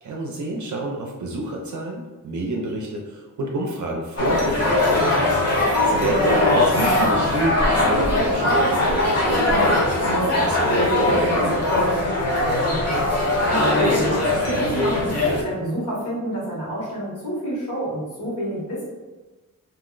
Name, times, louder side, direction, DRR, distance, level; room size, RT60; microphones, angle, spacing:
voice 1, 0.0-5.4 5.8-11.6, right 2 dB, 60° right, 0 dB, 0.5 m, -28 dB
sound 1, 4.2-15.4, left 1 dB, 45° left, 1.0 m, -20 dB
voice 2, 6.0-6.4 12.4-18.9, right 1 dB, 65° left, -6 dB, 1.5 m, -29 dB
2.7 x 2.0 x 3.7 m, 1.2 s
wide cardioid pair, 105°, 34 cm